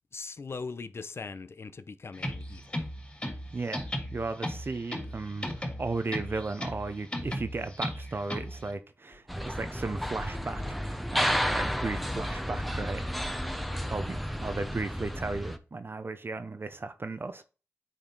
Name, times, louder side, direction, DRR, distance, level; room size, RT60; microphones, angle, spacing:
voice 1, 0.1-2.8 13.7-14.0, left 4 dB, 60° left, 0.6 m, -41 dB
sound 1, 2.1-8.7, equal, 25° left, 3.1 m, -36 dB
voice 2, 3.5-13.0 13.9-17.4, right 3 dB, 50° right, 0.7 m, -35 dB
sound 2, 9.3-15.6, equal, ahead, 0.8 m, -32 dB
9.0 x 4.3 x 3.9 m
cardioid pair, 55°, 5 cm